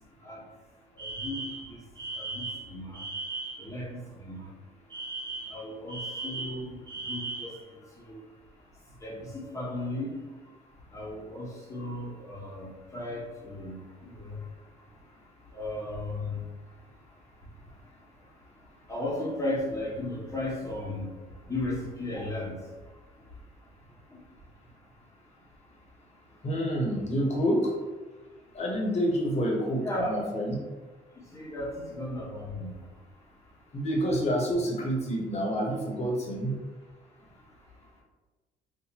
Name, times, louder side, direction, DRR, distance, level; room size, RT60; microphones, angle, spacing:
voice 1, 1.0-1.8 2.1-3.0 3.6-4.5 5.5-6.8 7.0-8.2 9.0-10.2 10.9-14.5 15.5-16.4 18.9-21.1 21.5-22.6 24.1-24.2 29.8-30.2 31.3-32.7, left 1 dB, 20° left, -4 dB, 1.0 m, -35 dB
Alarm, 1.0-3.7 4.9-7.6, right 3 dB, 25° right, 0.8 m, -37 dB
voice 2, 26.4-27.7 28.5-30.5 33.7-36.5, equal, 40° left, -1 dB, 1.1 m, -28 dB
4.1 x 2.5 x 2.9 m, 1.3 s
cardioid pair, 110°, 17 cm